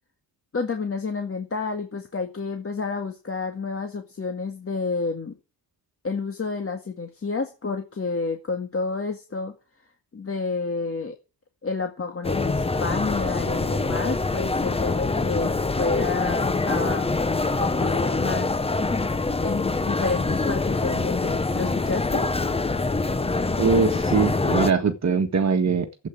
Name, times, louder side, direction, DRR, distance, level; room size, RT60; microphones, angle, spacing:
voice 1, 0.5-5.3 6.0-9.5 10.1-11.1 11.6-17.1 17.6-18.6 19.4-22.3, left 4 dB, 30° left, 1.9 m, -29 dB
sound 1, 12.2-24.7, left 3 dB, 15° left, 0.8 m, -25 dB
voice 2, 23.6-26.1, right 5 dB, 40° right, 1.7 m, -22 dB
13.0 x 8.5 x 8.5 m
cardioid pair, 120°, 42 cm